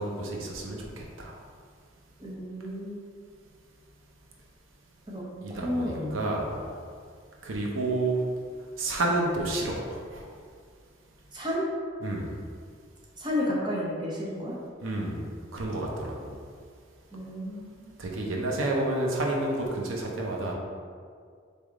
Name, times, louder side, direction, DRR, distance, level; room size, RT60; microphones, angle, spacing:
voice 1, 0.0-1.3 5.4-6.8 7.4-8.2 8.6-10.3 12.0-12.3 14.8-15.2 15.5-16.4 18.0-20.5, right 2 dB, 80° right, -1 dB, 0.7 m, -30 dB
voice 2, 2.2-3.0 5.1-5.2 5.5-6.2 11.3-11.7 13.2-14.6 17.1-18.0, left 1 dB, 20° right, -5 dB, 0.7 m, -32 dB
4.1 x 3.5 x 3.6 m, 2.1 s
head